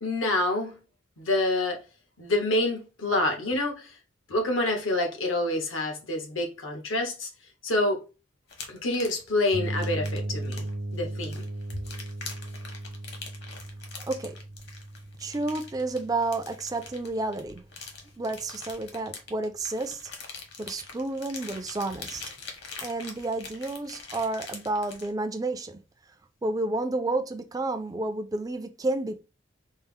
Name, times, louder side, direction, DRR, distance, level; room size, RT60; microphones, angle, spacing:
voice 1, 0.0-0.8 1.2-1.8 2.2-3.9 4.3-7.3 7.6-8.0 8.7-10.6 10.9-11.4, left 2 dB, 85° left, 1.0 m, -27 dB
sound 1, 8.5-25.1, left 4 dB, 55° left, 1.0 m, -44 dB
sound 2, 9.5-17.3, right 1 dB, 75° right, 0.6 m, -37 dB
voice 2, 15.2-17.6 18.2-20.1 20.6-22.2 22.8-25.8 26.4-29.2, right 2 dB, 20° right, 0.3 m, -30 dB
4.2 x 2.0 x 3.5 m
head